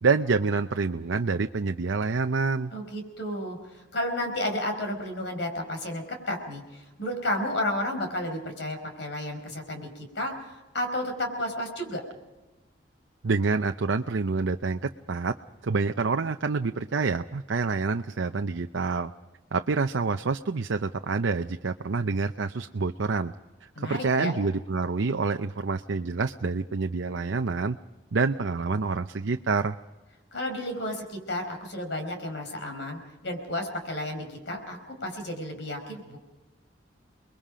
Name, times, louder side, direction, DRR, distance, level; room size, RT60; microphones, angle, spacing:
voice 1, 0.0-2.7 13.2-15.3 15.6-19.1 19.5-23.3 23.8-27.8 28.1-29.8, right 4 dB, 80° right, 7 dB, 0.6 m, -27 dB
voice 2, 2.7-12.0 23.7-24.3 30.3-36.2, left 1 dB, 65° left, 5 dB, 4.7 m, -32 dB
30.0 x 21.5 x 5.1 m, 1.1 s
head